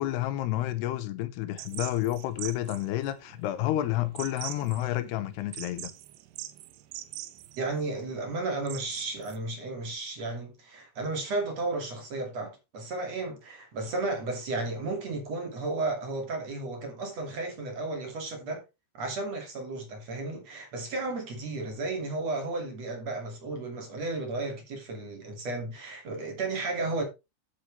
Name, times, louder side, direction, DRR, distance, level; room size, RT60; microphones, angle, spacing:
voice 1, 0.0-5.9, left 14 dB, 90° left, 3.0 m, -30 dB
sound 1, 1.6-9.4, right 14 dB, 80° right, 3.0 m, -43 dB
voice 2, 7.6-18.6 19.0-27.0, right 2 dB, 45° right, 3.3 m, -33 dB
11.5 x 8.3 x 3.4 m
omnidirectional pair, 4.7 m